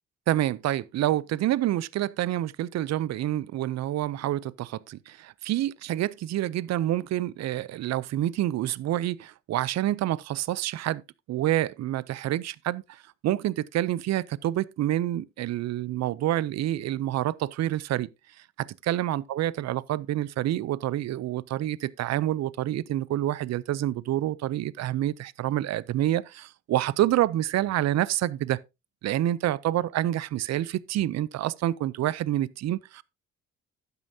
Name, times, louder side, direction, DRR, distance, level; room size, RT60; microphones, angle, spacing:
voice 1, 0.3-11.0 11.3-18.1 18.6-28.6 29.0-33.0, right 13 dB, 60° right, 0.5 m, -28 dB
12.0 x 9.0 x 2.7 m
cardioid pair, 90°, 30 cm